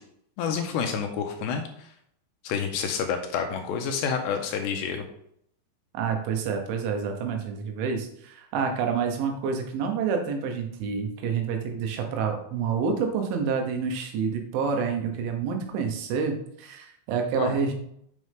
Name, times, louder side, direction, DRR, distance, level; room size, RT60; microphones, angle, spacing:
voice 1, 0.4-1.9 2.4-5.0 17.3-17.6, left 6 dB, 75° left, 4 dB, 2.9 m, -29 dB
voice 2, 5.9-17.7, right 6 dB, 85° right, 4 dB, 3.7 m, -28 dB
7.9 x 6.5 x 3.6 m, 0.72 s
omnidirectional pair, 5.4 m